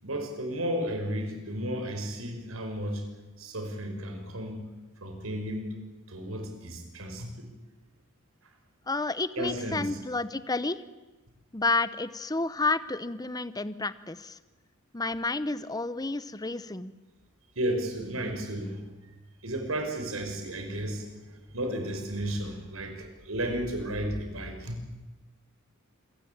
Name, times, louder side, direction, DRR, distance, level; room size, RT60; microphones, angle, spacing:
voice 1, 0.0-3.0 3.4-4.6 5.0-5.7 6.1-7.5 9.4-10.0 17.6-18.8 19.4-21.1 21.5-24.8, right 1 dB, 85° right, 5 dB, 5.9 m, -33 dB
voice 2, 8.9-10.8 11.5-14.4 14.9-16.9, left 3 dB, 20° left, 14 dB, 0.9 m, -30 dB
27.5 x 23.0 x 8.8 m, 1.2 s
head